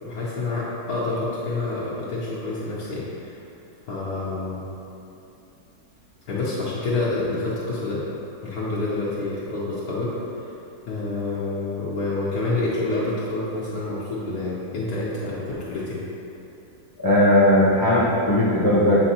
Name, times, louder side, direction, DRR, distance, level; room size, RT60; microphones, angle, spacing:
voice 1, 0.0-3.4 3.9-4.6 6.3-8.0 8.4-10.2 10.4-10.5 10.9-16.0, left 2 dB, 70° left, -8 dB, 1.3 m, -28 dB
voice 2, 17.0-19.0, left 1 dB, 30° left, -7 dB, 0.4 m, -18 dB
7.7 x 4.5 x 2.8 m, 2.8 s
omnidirectional pair, 1.7 m